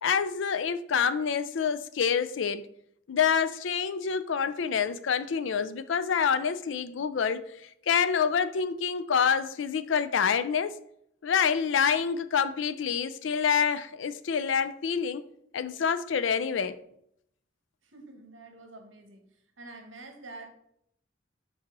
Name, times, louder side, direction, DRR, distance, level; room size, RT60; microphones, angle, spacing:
voice 1, 0.0-2.6 3.1-7.4 7.9-10.8 11.2-15.2 15.5-16.8, left 7 dB, 75° left, 0.4 m, -27 dB
voice 2, 17.8-19.2 19.6-20.5, right 2 dB, 80° right, 1.2 m, -47 dB
5.3 x 4.2 x 5.2 m
head